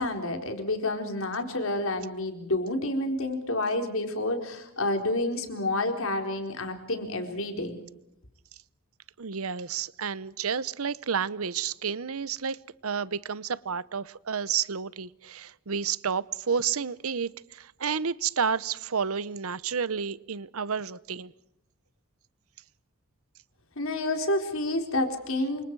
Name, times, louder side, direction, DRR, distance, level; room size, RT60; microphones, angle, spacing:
voice 1, 0.0-7.8 23.8-25.7, left 2 dB, 70° left, 4.2 m, -29 dB
voice 2, 9.2-21.3, right 6 dB, 80° right, 0.8 m, -30 dB
28.5 x 26.0 x 4.7 m
head